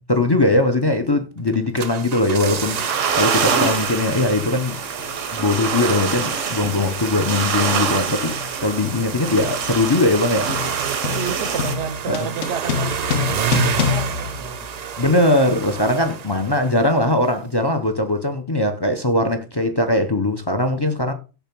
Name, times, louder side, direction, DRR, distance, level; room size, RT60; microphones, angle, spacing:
voice 1, 0.1-4.8 5.3-10.5 12.1-12.3 15.0-21.1, left 2 dB, 25° left, 0.6 m, -20 dB
sound 1, 1.5-17.0 17.2-17.3, right 8 dB, 50° right, 0.5 m, -31 dB
sound 2, 2.6-11.7, right 6 dB, 90° right, 1.3 m, -25 dB
sound 3, 5.0-5.2 6.1-6.4 6.6-15.2, left 8 dB, 80° left, 1.1 m, -28 dB
voice 2, 10.8-14.7, right 7 dB, 70° right, 0.9 m, -30 dB
6.9 x 3.4 x 6.0 m
omnidirectional pair, 1.2 m